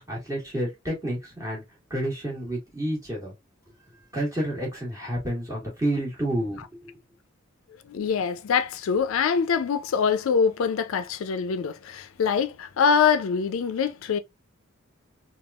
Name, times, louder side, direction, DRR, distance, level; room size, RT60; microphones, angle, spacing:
voice 1, 0.1-1.6 1.9-3.3 4.1-6.9, right 1 dB, 15° right, 1.6 m, -29 dB
voice 2, 7.9-14.2, left 6 dB, 70° left, 0.3 m, -24 dB
3.4 x 2.3 x 2.3 m
head